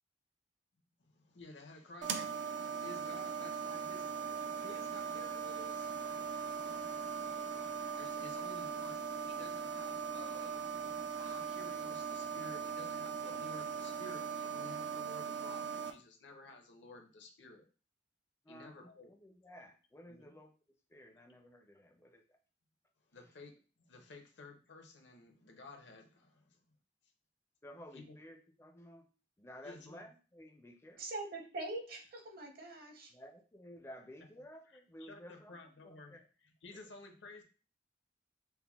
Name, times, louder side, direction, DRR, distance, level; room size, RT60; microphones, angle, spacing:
voice 1, 1.0-5.9 8.0-10.6 11.2-17.6 18.5-19.1 20.1-20.4 23.1-26.6 27.9-28.2 29.6-30.0 34.6-37.4, left 2 dB, 75° left, 4 dB, 0.7 m, -53 dB
sound 1, 2.0-15.9, right 6 dB, 85° right, 0.4 m, -40 dB
voice 2, 18.5-20.5 20.9-22.2 27.6-29.1 29.4-31.0 33.1-35.5 36.1-36.2 36.7-36.8, equal, 15° left, 4 dB, 0.4 m, -54 dB
voice 3, 31.0-33.1, right 2 dB, 55° right, 3 dB, 0.8 m, -43 dB
5.5 x 2.1 x 2.3 m, 0.36 s
head